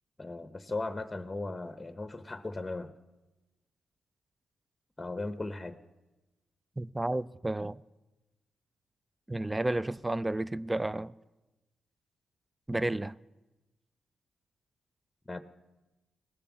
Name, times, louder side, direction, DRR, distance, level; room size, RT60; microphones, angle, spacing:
voice 1, 0.2-2.9 5.0-5.8 15.3-15.4, left 2 dB, 20° left, 0.9 m, -37 dB
voice 2, 6.8-7.8 9.3-11.1 12.7-13.1, right 1 dB, 15° right, 0.4 m, -31 dB
18.5 x 6.9 x 8.6 m
supercardioid pair, 45°, 0 cm